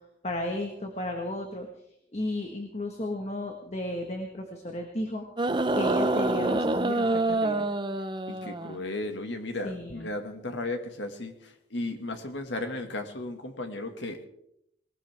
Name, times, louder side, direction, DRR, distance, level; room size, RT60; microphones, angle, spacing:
voice 1, 0.2-1.7 2.1-5.2 5.7-7.7 9.6-10.1, left 1 dB, 35° left, 3 dB, 1.5 m, -34 dB
sound 1, 5.4-8.8 9.9-10.0, right 2 dB, 25° right, 0.7 m, -26 dB
voice 2, 8.3-14.3, left 2 dB, 80° left, 5 dB, 1.9 m, -35 dB
19.5 x 19.0 x 3.5 m, 0.75 s
head